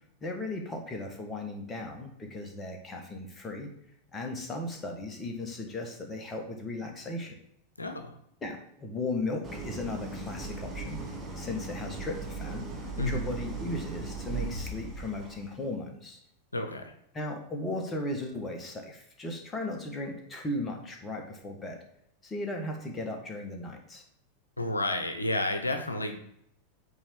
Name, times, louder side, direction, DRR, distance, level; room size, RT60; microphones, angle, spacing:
voice 1, 0.2-3.7 4.1-7.4 8.4-12.7 13.0-16.2 17.1-21.8 22.2-24.0, left 2 dB, 15° left, 2 dB, 1.4 m, -36 dB
voice 2, 7.8-8.1 13.0-13.2 16.5-16.9 24.6-26.1, left 2 dB, 80° left, 7 dB, 0.8 m, -30 dB
Idling, 9.4-15.5, right 3 dB, 15° right, 1.5 m, -38 dB
8.6 x 3.5 x 4.5 m, 0.73 s
figure-of-eight pair, 90°, 0 cm